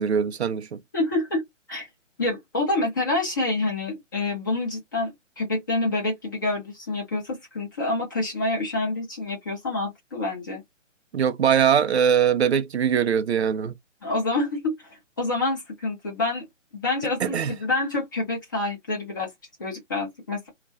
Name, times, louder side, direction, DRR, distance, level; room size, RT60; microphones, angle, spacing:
voice 1, 0.0-0.8 11.1-13.7 17.2-17.5, right 8 dB, 60° right, 0.5 m, -22 dB
voice 2, 0.9-1.4 1.7-1.9 2.2-10.6 14.0-16.4 16.7-19.3 19.6-20.5, left 2 dB, 15° left, 0.7 m, -27 dB
2.4 x 2.1 x 2.6 m
hypercardioid pair, 165°, 38 cm